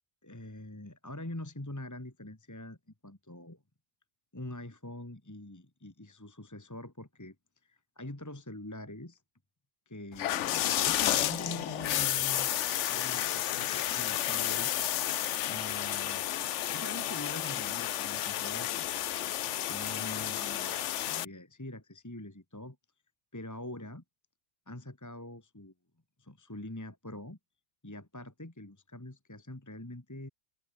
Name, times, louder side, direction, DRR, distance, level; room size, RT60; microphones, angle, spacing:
voice 1, 0.2-2.8 3.0-3.6 4.3-7.4 7.6-9.2 9.9-14.7 15.5-18.9 19.7-22.8 23.3-24.0 24.7-25.7 26.2-27.4 27.8-30.3, left 1 dB, 15° left, 1.8 m, -44 dB
sound 1, 10.1-21.3, left 12 dB, 70° left, 1.0 m, -31 dB
omnidirectional pair, 1.3 m